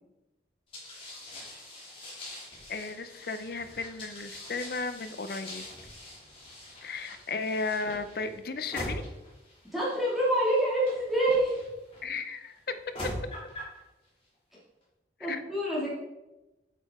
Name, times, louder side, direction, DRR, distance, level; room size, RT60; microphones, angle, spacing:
sound 1, 0.7-12.0 12.7-13.8, left 1 dB, 30° left, 2.5 m, -43 dB
voice 1, 2.7-5.6 6.8-9.0 12.0-12.6 15.2-15.4, left 4 dB, 55° left, 10 dB, 0.5 m, -34 dB
voice 2, 9.7-11.5 15.2-15.9, right 1 dB, ahead, -8 dB, 2.1 m, -26 dB
8.3 x 5.7 x 3.5 m, 1.0 s
head